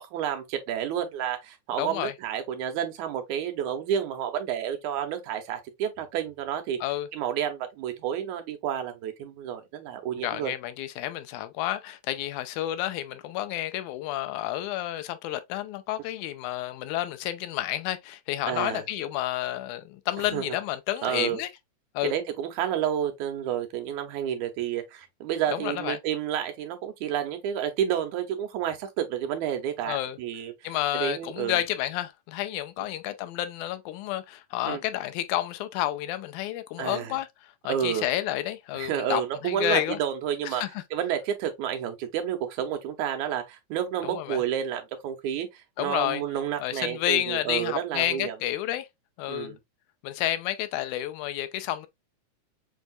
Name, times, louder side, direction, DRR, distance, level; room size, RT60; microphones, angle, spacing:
voice 1, 0.0-6.8 7.1-10.5 18.5-18.8 20.3-20.6 21.0-21.4 22.0-31.6 34.7-34.8 36.8-37.1 37.7-38.1 38.7-40.6 40.9-48.4 49.3-49.6, right 9 dB, 90° right, 2.3 m, -30 dB
voice 2, 1.8-2.1 6.8-7.1 10.2-21.5 21.9-22.1 25.5-26.0 29.9-30.2 30.6-37.3 37.6-40.0 40.4-40.7 44.0-44.4 45.8-46.2 46.6-48.9 49.2-49.6 50.0-51.9, left 13 dB, 85° left, 2.0 m, -30 dB
6.3 x 2.7 x 2.3 m
omnidirectional pair, 3.4 m